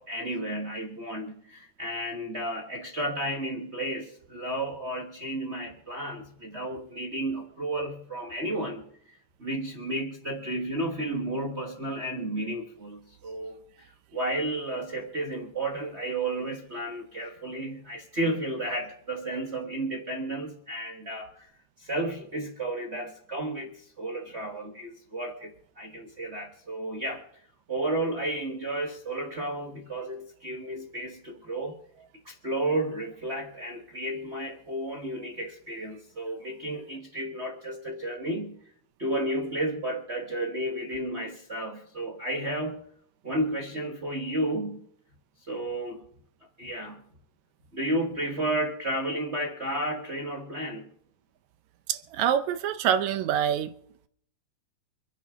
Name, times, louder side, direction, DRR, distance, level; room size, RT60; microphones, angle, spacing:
voice 1, 0.0-8.8 9.1-21.5 21.8-27.2 27.7-31.8 32.2-38.6 39.0-42.8 43.2-44.8 45.5-46.0 46.6-47.0 47.7-50.9, right 1 dB, 50° right, 0.8 m, -32 dB
voice 2, 51.9-53.7, right 9 dB, 75° right, 2.0 m, -26 dB
26.5 x 10.0 x 3.6 m
omnidirectional pair, 3.4 m